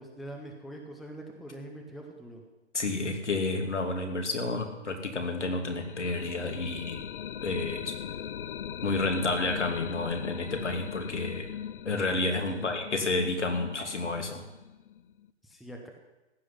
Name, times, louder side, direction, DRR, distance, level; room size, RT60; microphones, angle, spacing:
voice 1, 0.0-2.4 12.5-12.7 15.4-15.9, right 1 dB, ahead, 2 dB, 0.5 m, -43 dB
voice 2, 2.7-7.1 7.4-8.0 8.8-11.5 11.8-14.4, left 2 dB, 85° left, 4 dB, 2.7 m, -30 dB
sound 1, 5.5-15.3, left 9 dB, 50° left, 0.7 m, -40 dB
15.5 x 6.1 x 10.0 m, 1.1 s
hypercardioid pair, 140°, 34 cm